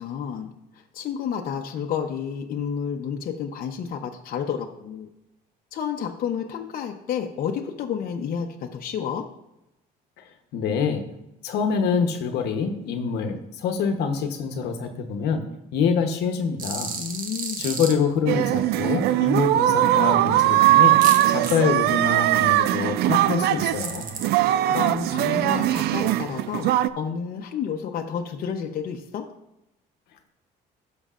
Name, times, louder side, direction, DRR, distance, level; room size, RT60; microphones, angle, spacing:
voice 1, 0.0-5.1 5.7-9.2 17.0-17.6 24.4-29.3, left 7 dB, 60° left, 3 dB, 0.8 m, -30 dB
voice 2, 10.5-11.0 11.4-16.9 17.6-21.0 21.3-24.1, left 6 dB, 80° left, 6 dB, 1.0 m, -25 dB
sound 1, 16.6-17.9 21.0-21.5 23.8-24.2, right 5 dB, 55° right, 1.3 m, -32 dB
sound 2, 18.3-26.9, right 14 dB, 75° right, 0.4 m, -20 dB
15.5 x 6.3 x 2.5 m, 0.88 s
cardioid pair, 110°, 17 cm